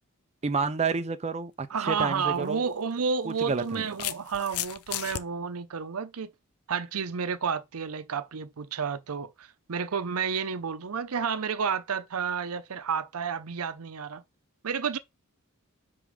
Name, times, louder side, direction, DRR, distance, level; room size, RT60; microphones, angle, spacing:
voice 1, 0.4-2.6 3.3-3.9, right 4 dB, 30° right, 0.5 m, -29 dB
voice 2, 1.7-6.3 6.7-14.2 14.6-15.0, right 6 dB, 75° right, 0.7 m, -31 dB
sound 1, 2.0-2.2 3.3-5.2, left 12 dB, 80° left, 0.5 m, -34 dB
5.1 x 4.5 x 5.1 m
head